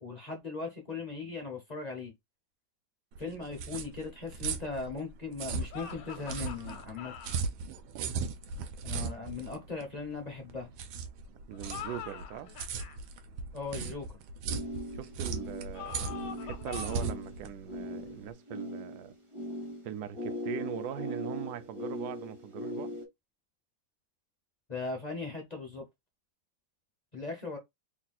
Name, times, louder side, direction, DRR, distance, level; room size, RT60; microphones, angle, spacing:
voice 1, 0.0-2.1 3.2-7.1 8.8-10.7 13.5-14.1 24.7-25.8 27.1-27.6, left 4 dB, 50° left, 0.5 m, -38 dB
sound 1, 3.1-18.3, right 5 dB, 90° right, 1.5 m, -38 dB
sound 2, 5.7-7.4 11.5-13.0 15.7-17.2, left 8 dB, 75° left, 1.3 m, -44 dB
voice 2, 11.5-12.5 14.9-19.1 19.8-22.9, right 11 dB, 70° right, 1.0 m, -41 dB
sound 3, 14.5-23.1, left 1 dB, 30° right, 0.6 m, -40 dB
3.4 x 2.3 x 4.1 m
omnidirectional pair, 2.1 m